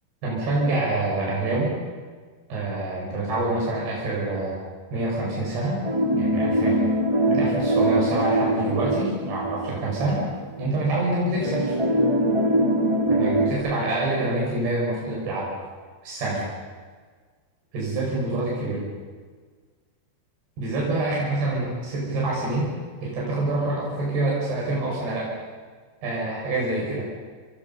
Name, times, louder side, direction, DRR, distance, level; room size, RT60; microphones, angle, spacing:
voice 1, 0.2-1.7 2.5-4.6 4.9-5.8 6.1-6.9 7.3-10.2 10.6-11.8 13.1-15.5 16.0-16.5 17.7-18.8 20.6-22.7 23.0-25.3 26.0-27.1, right 2 dB, 85° right, -4 dB, 7.8 m, -26 dB
sound 1, 5.8-10.2 10.6-10.7 11.4-13.5, right 1 dB, 10° right, 2.6 m, -23 dB
30.0 x 27.0 x 5.5 m, 1.5 s
omnidirectional pair, 4.6 m